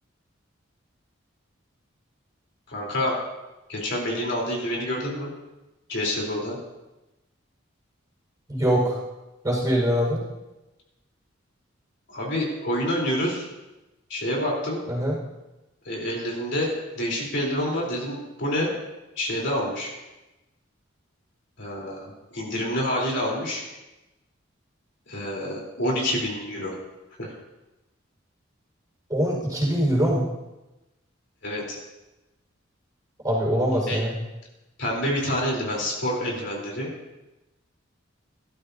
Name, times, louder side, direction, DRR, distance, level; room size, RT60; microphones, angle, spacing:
voice 1, 2.7-3.2 3.7-5.3 5.9-6.6 12.1-13.5 14.1-14.8 15.9-18.7 19.2-19.9 21.6-23.6 25.1-26.7 27.2-27.3 31.4-31.8 33.9-34.0 34.8-36.9, left 1 dB, 60° left, -3 dB, 3.6 m, -27 dB
voice 2, 8.5-9.0 9.4-10.2 14.9-15.2 29.1-30.3 33.2-34.1, equal, 20° right, -5 dB, 4.8 m, -23 dB
18.0 x 13.0 x 2.7 m, 1.0 s
head